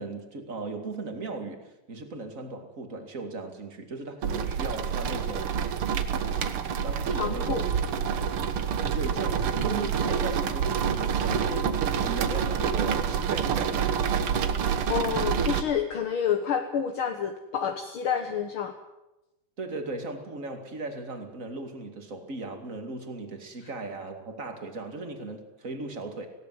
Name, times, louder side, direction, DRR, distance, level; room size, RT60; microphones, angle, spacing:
voice 1, 0.0-5.7 6.2-6.5 6.8-7.7 8.9-13.9 19.6-26.3, right 3 dB, 25° right, 6 dB, 2.4 m, -37 dB
sound 1, 4.2-15.6, right 7 dB, 55° right, 1.8 m, -27 dB
voice 2, 7.2-7.6 11.3-11.4 14.9-18.7, left 8 dB, 55° left, 6 dB, 1.6 m, -29 dB
19.5 x 17.5 x 9.5 m, 0.96 s
omnidirectional pair, 3.7 m